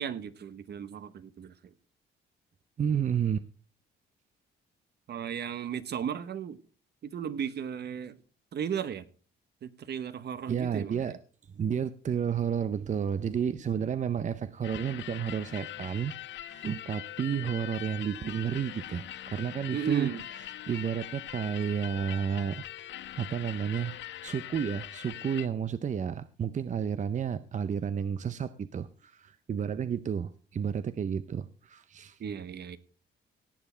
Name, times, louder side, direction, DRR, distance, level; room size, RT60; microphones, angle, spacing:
voice 1, 0.0-1.5 5.1-6.6 7.0-8.2 8.5-9.1 9.6-11.2 19.7-20.2 32.2-32.8, right 8 dB, 55° right, 1.0 m, -35 dB
voice 2, 2.8-3.4 10.5-11.2 11.6-16.1 16.4-20.1 20.7-32.2, right 7 dB, 40° right, 0.6 m, -31 dB
sound 1, 14.6-25.5, left 13 dB, 65° left, 0.6 m, -42 dB
18.0 x 7.2 x 4.4 m
cardioid pair, 90°, 20 cm